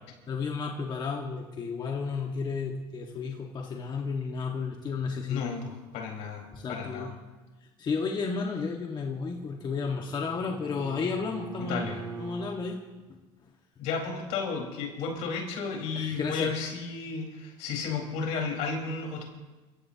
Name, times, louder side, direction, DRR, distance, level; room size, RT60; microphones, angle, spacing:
voice 1, 0.3-5.5 6.5-7.1 7.8-11.8 12.2-12.8 15.9-16.5, left 5 dB, 40° left, 1 dB, 1.6 m, -32 dB
voice 2, 5.3-7.1 11.6-12.0 13.8-19.2, left 5 dB, 80° left, 0 dB, 4.6 m, -33 dB
Bowed string instrument, 8.9-12.6, right 4 dB, 45° right, 3.0 m, -43 dB
29.5 x 15.5 x 2.9 m, 1.2 s
cardioid pair, 105°, 12 cm